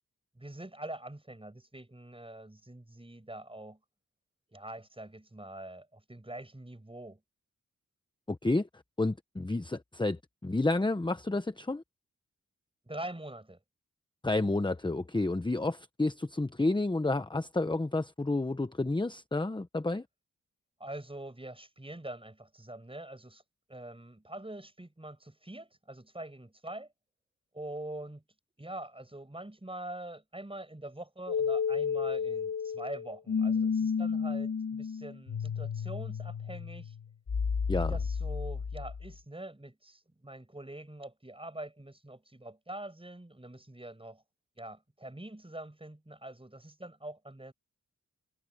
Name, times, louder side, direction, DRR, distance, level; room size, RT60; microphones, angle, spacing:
voice 1, 0.3-3.8 4.5-7.2 12.9-13.6 20.8-23.4 23.7-26.9 27.5-28.2 28.6-36.9 37.8-44.2 44.6-47.5, right 1 dB, 15° right, 7.7 m, -44 dB
voice 2, 8.3-8.7 9.0-11.8 14.2-20.0 37.7-38.0, left 2 dB, 15° left, 0.9 m, -30 dB
sound 1, 31.3-39.2, left 6 dB, 65° left, 2.0 m, -32 dB
wide cardioid pair, 70°, 32 cm